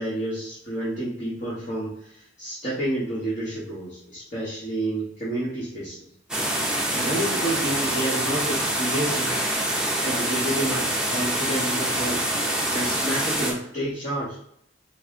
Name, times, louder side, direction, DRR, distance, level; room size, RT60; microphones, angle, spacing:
voice 1, 0.0-6.1 6.9-9.4 10.0-12.2 12.7-14.4, right 1 dB, 40° left, -9 dB, 1.1 m, -29 dB
sound 1, 6.3-13.5, right 1 dB, 5° right, 0.6 m, -25 dB
4.1 x 2.1 x 3.5 m, 0.71 s
head